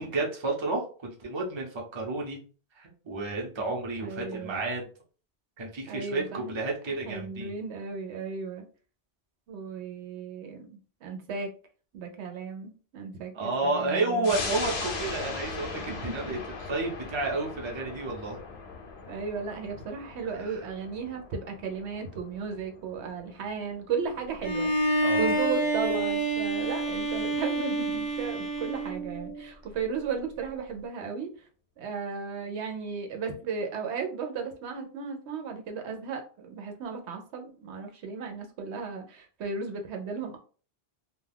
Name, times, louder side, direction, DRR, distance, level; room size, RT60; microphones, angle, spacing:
voice 1, 0.0-2.4 2.8-4.9 5.6-7.5 13.3-18.4 20.5-20.6 25.0-25.3, right 2 dB, 30° right, -1 dB, 0.6 m, -31 dB
voice 2, 4.0-4.7 5.9-6.5 7.0-8.6 9.5-11.5 11.9-14.6 15.9-16.3 19.1-31.5 31.8-40.4, right 5 dB, 80° right, 4 dB, 0.9 m, -35 dB
sound 1, 14.2-25.2 25.6-25.7, left 4 dB, 70° left, 0.9 m, -39 dB
Bowed string instrument, 24.4-29.4, right 2 dB, 30° left, 0.5 m, -28 dB
2.3 x 2.3 x 3.3 m, 0.39 s
omnidirectional pair, 1.1 m